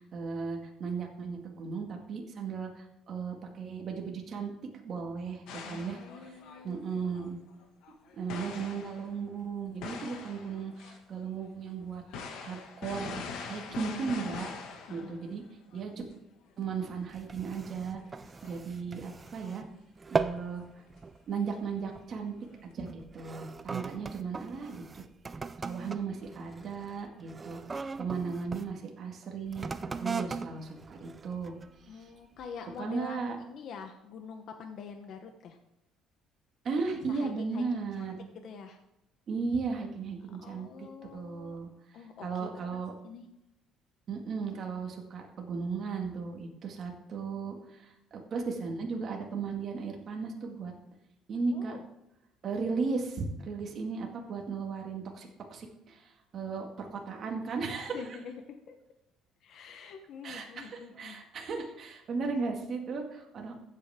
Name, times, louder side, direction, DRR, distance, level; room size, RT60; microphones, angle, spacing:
voice 1, 0.0-4.5 4.8-7.4 8.1-12.0 12.4-15.4 15.7-15.9 16.6-18.0 18.4-19.6 20.1-20.6 21.3-22.3 22.6-25.0 25.6-32.1 32.8-33.4 36.6-38.3 39.3-42.9 44.1-50.7 51.3-51.8 52.4-58.0 60.2-63.5, right 5 dB, 40° right, 1 dB, 2.1 m, -36 dB
sound 1, 5.5-9.2 9.8-11.0 11.3-11.4 12.1-15.4 15.7-15.8 16.1-16.2 16.9-17.1 17.3-17.6 17.9-19.3 21.0-21.1 22.4-22.6, left 5 dB, 75° left, 1.6 m, -44 dB
voice 2, 5.6-7.0 14.8-15.2 31.9-35.6 37.0-38.1 38.4-38.8 40.4-41.6 41.9-42.6 43.0-43.2 51.5-51.8 57.9-58.8 59.4-61.2, left 6 dB, 55° left, 6 dB, 1.0 m, -46 dB
sound 2, 17.1-19.7 20.0-20.5 20.9-21.2 21.9-22.1 22.9-28.7 29.5-31.8 32.4-32.5, right 4 dB, 20° right, 0.5 m, -38 dB
15.0 x 8.2 x 3.7 m, 0.89 s
cardioid pair, 150°, 0 cm